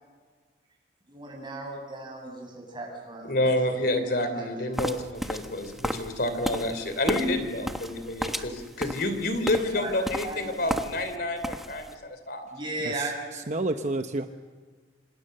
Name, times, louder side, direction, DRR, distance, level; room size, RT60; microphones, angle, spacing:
voice 1, 1.1-3.8 4.1-4.5 9.7-9.9 10.2-10.6 12.5-13.1, right 2 dB, 25° right, 1 dB, 7.9 m, -36 dB
voice 2, 3.2-12.4, left 1 dB, 60° left, 9 dB, 3.3 m, -29 dB
Boot foley, 4.8-11.2 11.4-11.9, equal, ahead, 1.3 m, -34 dB
voice 3, 12.8-14.3, right 2 dB, 40° right, 7 dB, 0.9 m, -30 dB
27.5 x 27.0 x 6.8 m, 1.5 s
head